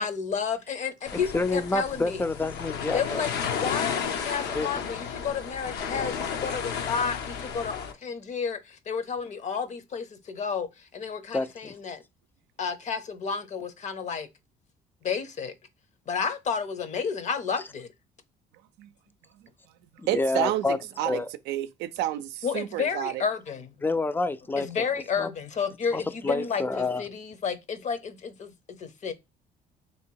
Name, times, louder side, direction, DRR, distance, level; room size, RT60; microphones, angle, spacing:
voice 1, 0.0-2.2 2.9-12.0 12.6-14.3 15.0-15.5 16.1-17.9 22.4-23.7 24.6-29.1, left 6 dB, 45° left, 0.7 m, -31 dB
sound 1, 1.1-7.9, left 7 dB, 75° left, 0.8 m, -33 dB
voice 2, 1.1-3.2 4.5-4.7 11.3-11.8 20.0-20.8 21.1-21.3 23.8-24.9 25.2-25.3 25.9-27.0, left 3 dB, 10° left, 0.4 m, -28 dB
voice 3, 20.1-23.2, right 14 dB, 90° right, 0.4 m, -30 dB
3.4 x 2.9 x 4.5 m
cardioid pair, 110°, 17 cm